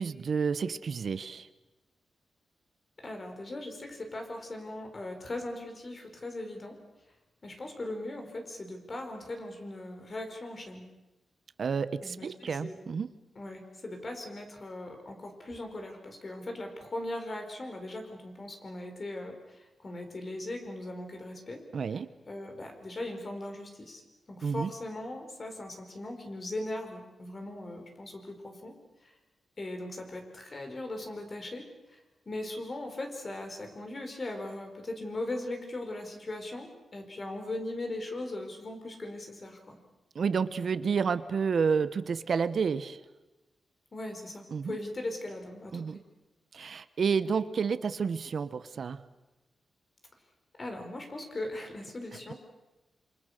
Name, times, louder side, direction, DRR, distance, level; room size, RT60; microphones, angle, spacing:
voice 1, 0.0-1.5 11.6-13.1 21.7-22.1 24.4-24.7 40.1-43.0 44.5-44.8 45.7-46.0 46.5-49.0, right 6 dB, 55° right, 13 dB, 0.9 m, -30 dB
voice 2, 3.0-6.7 7.4-10.9 12.0-12.8 13.4-19.4 19.8-21.6 22.3-24.0 24.3-28.7 29.6-31.6 32.3-39.8 43.9-46.0 50.6-52.3, left 1 dB, 35° left, 4 dB, 4.8 m, -39 dB
27.0 x 26.5 x 6.7 m, 1.0 s
wide cardioid pair, 115°, 0 cm